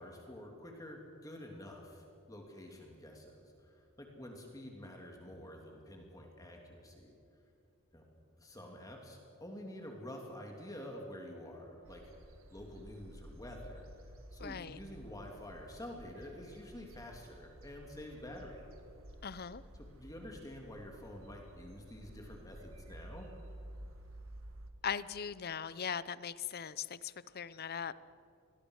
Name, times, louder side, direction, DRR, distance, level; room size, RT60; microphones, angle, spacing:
voice 1, 0.0-7.1 7.9-8.0 8.4-12.0 12.5-13.8 14.3-18.7 19.9-23.3, left 1 dB, 15° left, 1 dB, 2.9 m, -48 dB
sound 1, 11.8-24.7, right 1 dB, 75° right, 1.9 m, -53 dB
voice 2, 14.4-14.8 19.2-19.6 24.8-27.9, left 7 dB, 50° left, 17 dB, 0.7 m, -39 dB
27.5 x 22.0 x 6.5 m, 2.6 s
head